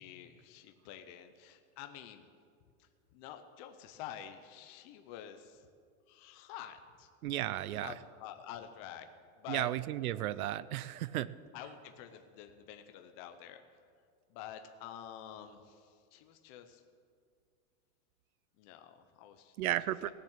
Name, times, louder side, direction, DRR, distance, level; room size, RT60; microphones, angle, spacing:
voice 1, 0.0-2.3 2.8-5.7 6.1-7.1 7.8-9.1 9.4-9.7 11.5-13.9 14.3-16.8 18.6-19.5 20.0-20.1, left 10 dB, 25° left, 7 dB, 0.5 m, -48 dB
voice 2, 7.2-7.9 9.5-11.3 19.6-20.1, right 14 dB, 75° right, 17 dB, 0.7 m, -34 dB
17.5 x 7.2 x 8.0 m, 2.1 s
supercardioid pair, 165°, 44 cm